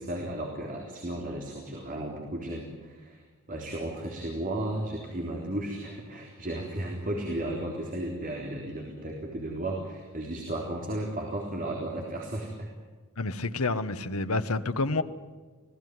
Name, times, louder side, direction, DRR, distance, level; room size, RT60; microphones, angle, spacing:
voice 1, 0.0-3.2 3.5-12.7, right 1 dB, 40° right, 0 dB, 3.8 m, -34 dB
voice 2, 13.2-15.0, left 3 dB, 80° left, 10 dB, 1.2 m, -28 dB
26.5 x 18.0 x 9.6 m, 1.4 s
head